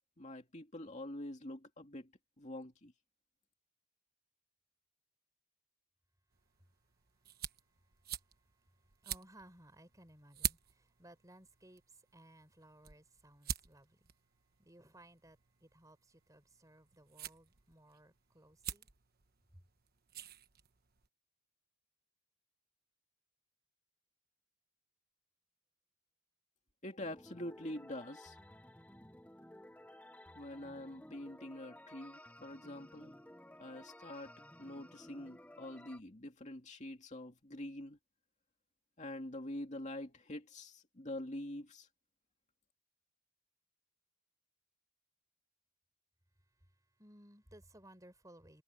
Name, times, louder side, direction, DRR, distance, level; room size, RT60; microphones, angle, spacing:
voice 1, 0.2-2.1 2.4-2.9 26.8-28.4 30.3-33.1 33.6-34.3 34.6-38.0 39.0-41.9, left 1 dB, 35° left, 2.5 m, -45 dB
sound 1, 6.3-21.1, right 9 dB, 45° right, 1.2 m, -47 dB
voice 2, 6.4-14.2 14.6-18.9 19.5-19.6 46.3-48.6, right 1 dB, 15° right, 4.6 m, -61 dB
sound 2, 27.0-36.0, left 1 dB, 5° left, 0.9 m, -56 dB
head